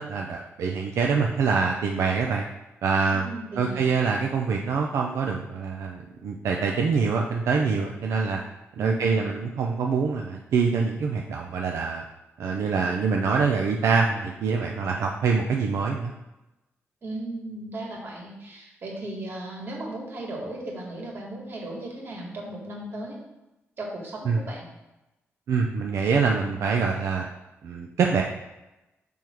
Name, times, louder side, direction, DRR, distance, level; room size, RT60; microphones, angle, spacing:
voice 1, 0.0-2.4 2.8-3.3 3.6-8.4 8.8-12.0 12.4-16.1 24.3-24.4 25.5-27.3 27.6-28.2, right 5 dB, 85° right, 1 dB, 0.5 m, -25 dB
voice 2, 3.1-3.8 8.8-9.2 17.0-23.2 23.8-24.6, right 1 dB, 50° right, -2 dB, 2.0 m, -36 dB
6.2 x 3.6 x 4.5 m, 0.98 s
cardioid pair, 90°, 5 cm